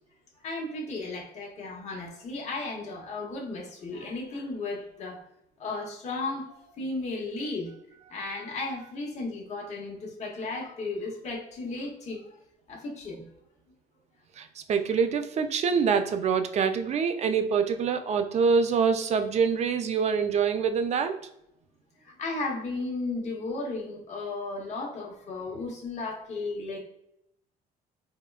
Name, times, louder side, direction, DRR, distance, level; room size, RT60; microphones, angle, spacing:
voice 1, 0.4-5.2 5.6-7.7 8.1-12.3 12.7-13.2 22.0-26.8, left 3 dB, 40° left, -1 dB, 0.8 m, -34 dB
voice 2, 14.4-21.2, right 6 dB, 40° right, 8 dB, 0.4 m, -25 dB
3.6 x 2.1 x 2.2 m, 0.79 s
cardioid pair, 110°, 17 cm